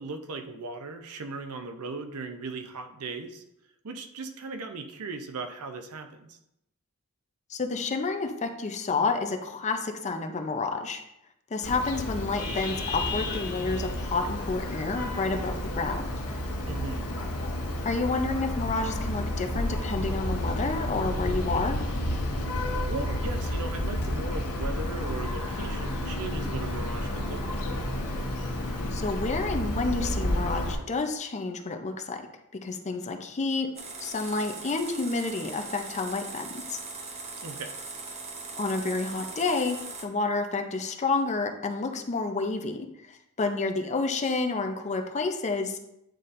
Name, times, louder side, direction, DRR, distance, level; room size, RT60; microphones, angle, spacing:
voice 1, 0.0-3.4 3.8-6.4 16.7-17.1 22.9-27.7 37.4-37.8, right 3 dB, 80° right, 7 dB, 0.6 m, -38 dB
voice 2, 7.5-11.0 11.5-16.0 17.8-21.8 28.9-32.2 32.5-33.7 34.0-36.8 38.6-45.8, left 3 dB, 30° left, 5 dB, 0.5 m, -29 dB
Vehicle horn car horn honking, 11.6-30.7, left 1 dB, 90° left, 1.2 m, -31 dB
sound 1, 33.7-40.0, right 3 dB, 30° right, 0.7 m, -40 dB
8.9 x 4.1 x 2.5 m, 0.82 s
head